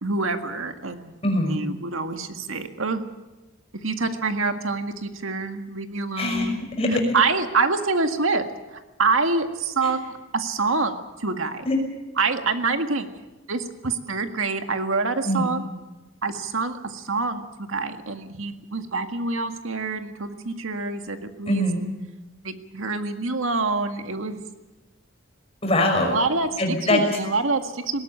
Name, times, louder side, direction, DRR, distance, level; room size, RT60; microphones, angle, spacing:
voice 1, 0.0-1.2 1.5-3.0 3.8-6.6 7.1-11.6 12.2-13.1 13.5-15.6 16.2-17.4 17.7-21.7 22.4-24.4 26.1-26.5 26.9-28.0, right 3 dB, 85° right, 6 dB, 1.9 m, -26 dB
voice 2, 1.2-1.6 6.2-7.1 9.8-9.9 11.6-11.8 15.2-15.5 21.5-21.8 25.6-26.2 26.6-27.1, left 1 dB, 30° left, 2 dB, 5.8 m, -22 dB
20.0 x 17.5 x 9.1 m, 1.1 s
head